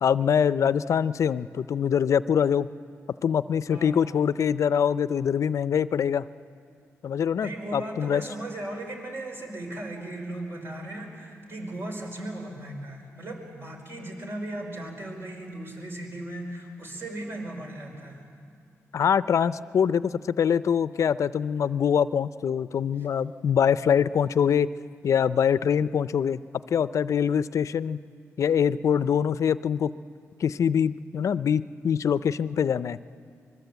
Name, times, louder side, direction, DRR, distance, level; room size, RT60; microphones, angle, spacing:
voice 1, 0.0-2.7 3.2-6.3 7.0-8.2 18.9-24.7 25.0-26.4 26.7-28.0 28.4-29.9 30.4-33.1, left 8 dB, 70° left, 16 dB, 0.5 m, -24 dB
voice 2, 3.7-4.1 7.2-18.2, right 1 dB, 50° right, 2 dB, 5.0 m, -37 dB
25.0 x 22.0 x 8.2 m, 2.3 s
cardioid pair, 75°, 5 cm